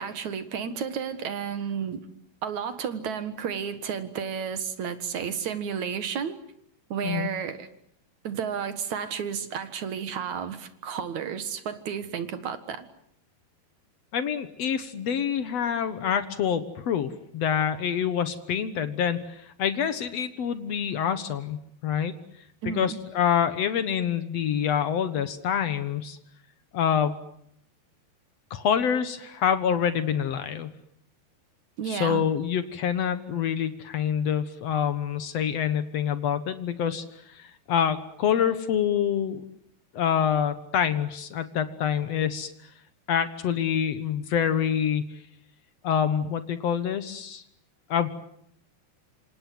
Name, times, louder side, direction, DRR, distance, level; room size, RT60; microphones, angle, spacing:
voice 1, 0.0-2.0 2.4-6.4 6.9-7.7 8.2-12.9 22.6-23.0 31.8-32.3, right 7 dB, 55° right, 11 dB, 2.4 m, -32 dB
voice 2, 14.1-22.1 22.7-26.2 26.7-27.2 28.5-30.7 31.9-39.4 39.9-42.5 43.1-45.2 45.8-47.4 47.9-48.1, left 8 dB, 75° left, 11 dB, 1.5 m, -26 dB
27.5 x 27.0 x 7.7 m, 0.70 s
omnidirectional pair, 4.8 m